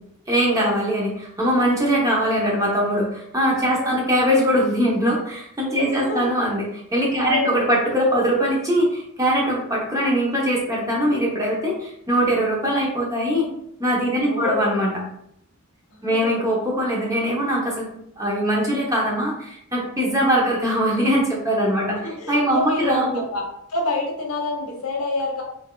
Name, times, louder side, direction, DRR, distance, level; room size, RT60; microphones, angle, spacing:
voice 1, 0.3-6.7 6.9-13.5 13.8-15.0 16.0-17.9 18.2-22.0 22.3-23.2, equal, 15° right, -3 dB, 0.8 m, -21 dB
voice 2, 3.7-4.1 5.9-6.3 7.1-7.6 14.1-14.8 15.9-16.4 18.8-19.0 21.9-25.4, left 2 dB, 85° left, 0 dB, 1.0 m, -28 dB
5.1 x 2.7 x 2.3 m, 0.74 s
head